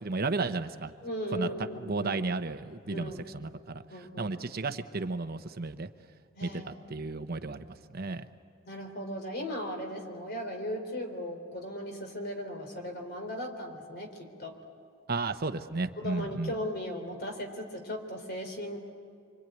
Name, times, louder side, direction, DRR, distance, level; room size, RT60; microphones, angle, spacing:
voice 1, 0.0-0.9 1.3-5.9 6.4-7.6 7.9-8.2 15.1-16.5, right 3 dB, 50° right, 9 dB, 0.9 m, -33 dB
voice 2, 1.0-2.2 2.9-3.3 3.9-4.3 6.4-7.0 8.7-14.5 16.0-18.8, equal, 50° left, 4 dB, 3.7 m, -37 dB
25.5 x 25.0 x 9.2 m, 2.3 s
head